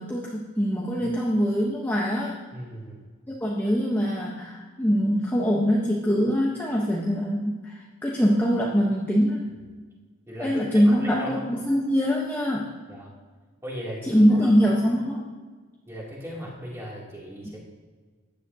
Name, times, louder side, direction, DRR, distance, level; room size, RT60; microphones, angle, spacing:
voice 1, 0.0-2.4 3.3-9.5 10.4-12.8 14.0-15.2 17.4-17.6, equal, 10° left, -4 dB, 0.9 m, -23 dB
voice 2, 2.5-3.0 10.3-11.5 12.9-13.1 13.6-14.7 15.9-17.6, equal, 10° right, -5 dB, 2.6 m, -37 dB
14.5 x 10.0 x 2.7 m, 1.4 s
head